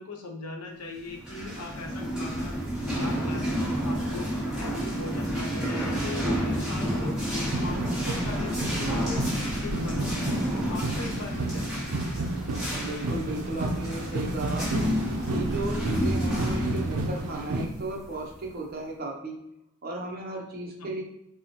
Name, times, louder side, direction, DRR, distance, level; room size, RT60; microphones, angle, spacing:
voice 1, 0.0-2.6 2.9-7.2 7.6-9.2 9.6-11.7 20.8-20.9, left 2 dB, 90° left, 1 dB, 0.8 m, -40 dB
sound 1, 1.1-18.5, equal, 5° right, 1.0 m, -30 dB
sound 2, 7.4-17.7, right 2 dB, 80° right, 0.5 m, -32 dB
voice 2, 12.8-14.7 15.3-19.4 19.8-21.0, right 2 dB, 40° right, 0 dB, 0.7 m, -35 dB
5.4 x 2.1 x 2.9 m, 0.82 s
head